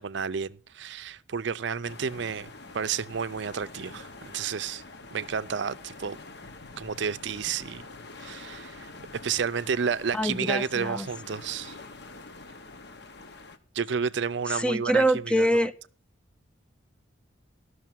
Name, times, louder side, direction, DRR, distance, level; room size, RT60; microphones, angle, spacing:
voice 1, 0.0-4.8 5.1-6.2 6.8-7.8 8.2-8.9 9.2-11.8 13.7-15.5, right 6 dB, 60° right, 0.5 m, -31 dB
sound 1, 1.8-13.6, left 3 dB, 55° left, 1.1 m, -46 dB
voice 2, 10.1-11.1 14.5-15.7, right 1 dB, 5° left, 0.4 m, -25 dB
12.0 x 6.4 x 7.5 m
head